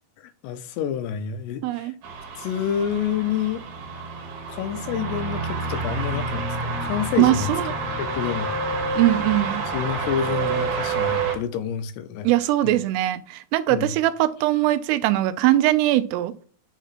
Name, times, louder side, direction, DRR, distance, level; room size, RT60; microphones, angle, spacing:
voice 1, 0.2-1.9 2.4-3.6 4.5-7.5 8.0-8.6 9.7-12.3 12.6-12.8 13.7-13.9, left 9 dB, 80° left, 2.8 m, -28 dB
voice 2, 1.6-1.9 7.2-7.7 9.0-9.6 12.2-16.3, right 15 dB, 85° right, 2.6 m, -21 dB
sound 1, 2.0-11.4, right 4 dB, 70° right, 3.0 m, -28 dB
9.1 x 3.0 x 4.1 m
omnidirectional pair, 4.8 m